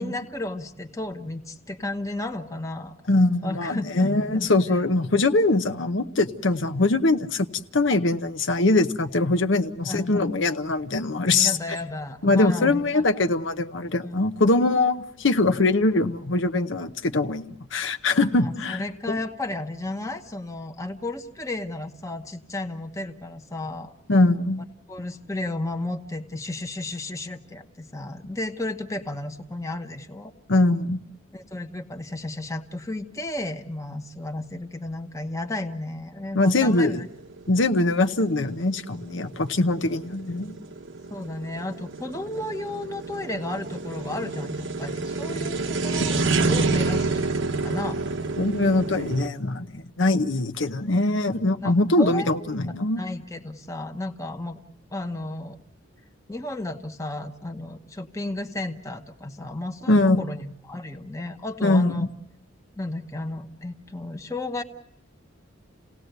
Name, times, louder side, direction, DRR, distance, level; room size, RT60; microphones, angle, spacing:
voice 1, 0.0-2.9 3.4-4.5 9.8-10.1 11.3-13.0 14.0-14.1 18.4-23.9 24.9-30.3 31.3-37.0 41.1-46.2 46.5-48.0 51.6-54.6 54.9-55.6 56.3-62.1 62.8-64.6, left 2 dB, 15° left, 5 dB, 1.1 m, -33 dB
voice 2, 3.1-7.5 7.7-11.8 12.2-18.8 19.1-19.2 24.1-24.6 30.5-31.0 36.3-37.0 37.5-40.5 48.4-53.0 59.9-60.2 61.6-62.1, left 2 dB, 65° left, 8 dB, 0.9 m, -22 dB
sound 1, 36.8-49.3, right 3 dB, 65° right, 1.1 m, -28 dB
28.5 x 18.0 x 8.0 m, 0.80 s
head